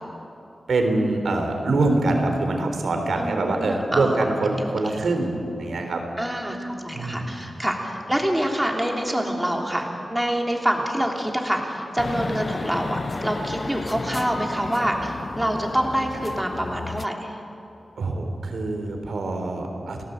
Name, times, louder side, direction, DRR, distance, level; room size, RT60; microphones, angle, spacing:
voice 1, 0.7-6.0 6.9-7.3 18.0-20.0, right 2 dB, 85° right, 4 dB, 3.4 m, -24 dB
voice 2, 3.1-4.2 4.5-5.0 6.2-17.4, equal, 5° right, 1 dB, 3.2 m, -26 dB
sound 1, 12.0-17.1, left 3 dB, 40° left, 0.5 m, -33 dB
29.0 x 18.5 x 8.1 m, 2.7 s
wide cardioid pair, 135°, 0 cm